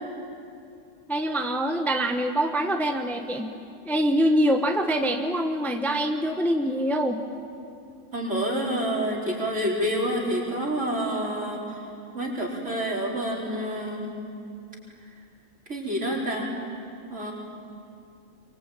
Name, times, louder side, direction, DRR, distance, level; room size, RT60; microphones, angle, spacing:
voice 1, 1.1-3.5 3.8-7.2, equal, ahead, 4 dB, 1.1 m, -24 dB
voice 2, 8.1-14.2 15.7-16.5 17.1-17.3, equal, 60° right, -3 dB, 4.9 m, -28 dB
24.0 x 24.0 x 9.1 m, 2.5 s
omnidirectional pair, 1.4 m